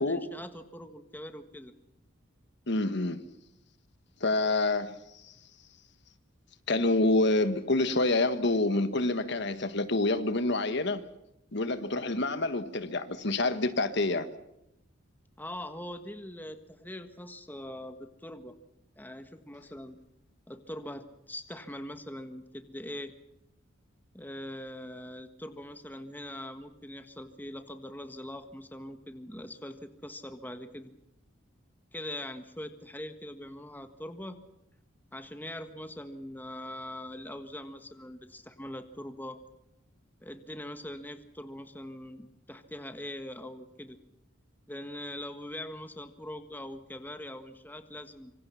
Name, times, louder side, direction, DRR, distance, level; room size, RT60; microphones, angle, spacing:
voice 1, 0.0-1.7 15.4-18.6 19.0-20.0 20.5-23.1 24.1-30.9 31.9-34.4 35.1-39.4 40.2-44.0 44.7-48.3, left 1 dB, 10° left, 1.6 m, -42 dB
voice 2, 2.7-3.2 4.2-5.0 5.2-5.3 6.7-11.0 11.5-14.3, left 2 dB, 60° left, 1.5 m, -27 dB
26.0 x 25.0 x 5.7 m
head